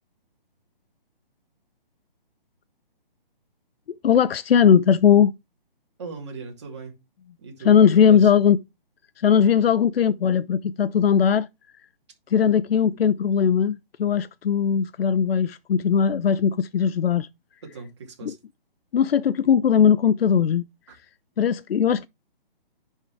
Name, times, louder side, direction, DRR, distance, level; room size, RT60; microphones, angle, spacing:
voice 1, 4.0-5.3 7.6-8.6 9.2-11.5 12.3-17.3 18.9-20.7 21.4-22.1, left 8 dB, 85° left, 0.5 m, -19 dB
voice 2, 6.0-7.0 7.4-8.3 17.6-18.4 20.9-21.0, right 4 dB, 30° right, 2.4 m, -39 dB
10.5 x 4.5 x 3.3 m
hypercardioid pair, 175°, 29 cm